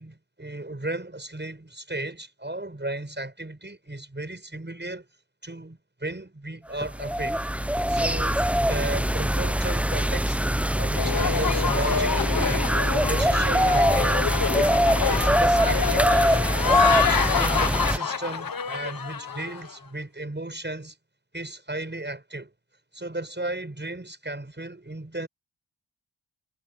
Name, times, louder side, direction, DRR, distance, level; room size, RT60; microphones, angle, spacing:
voice 1, 0.0-5.0 5.4-7.4 7.9-8.4 8.7-10.4 10.8-12.7 13.1-14.2 15.0-16.1 16.6-21.0 21.3-22.5 22.9-25.3, right 2 dB, 25° right, 6.6 m, -34 dB
sound 1, 6.8-18.0, equal, 5° right, 0.7 m, -23 dB
sound 2, 11.0-19.7, left 6 dB, 55° left, 1.0 m, -26 dB
cardioid pair, 50°, 41 cm